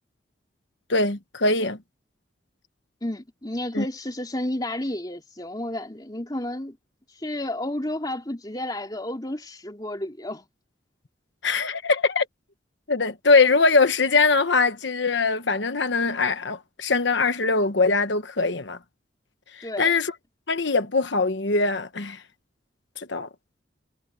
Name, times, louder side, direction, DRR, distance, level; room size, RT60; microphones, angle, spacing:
voice 1, 0.9-1.8 3.7-3.8 11.4-12.3 12.9-18.8 19.5-20.1 20.5-22.2 23.0-23.3, left 3 dB, 70° left, 1.2 m, -22 dB
voice 2, 3.0-6.8 7.1-10.4 19.6-20.0, left 1 dB, 20° left, 3.3 m, -31 dB
head